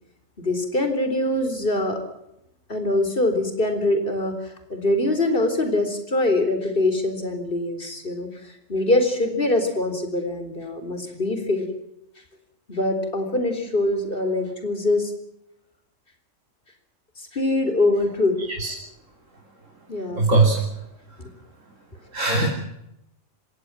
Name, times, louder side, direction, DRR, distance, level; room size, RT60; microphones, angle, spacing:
voice 1, 0.4-2.0 2.7-11.7 12.7-15.1 17.2-18.3 19.9-20.3 22.3-22.5, left 2 dB, 45° left, 7 dB, 4.1 m, -23 dB
voice 2, 20.2-20.6 22.1-22.5, right 3 dB, 90° right, 1 dB, 3.7 m, -19 dB
25.0 x 18.0 x 7.5 m, 0.84 s
omnidirectional pair, 1.3 m